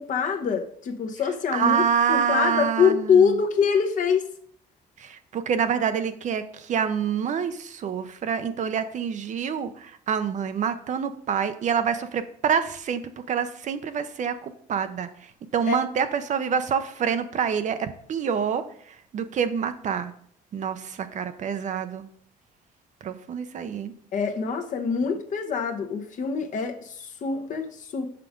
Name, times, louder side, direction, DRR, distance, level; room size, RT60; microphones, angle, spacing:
voice 1, 0.0-4.3 15.7-15.8 24.1-28.1, left 6 dB, 50° left, 5 dB, 1.0 m, -24 dB
voice 2, 1.5-3.3 5.0-20.1 20.5-22.1 23.0-23.9, right 7 dB, 45° right, 10 dB, 0.6 m, -27 dB
5.9 x 4.8 x 5.0 m, 0.62 s
cardioid pair, 110°, 17 cm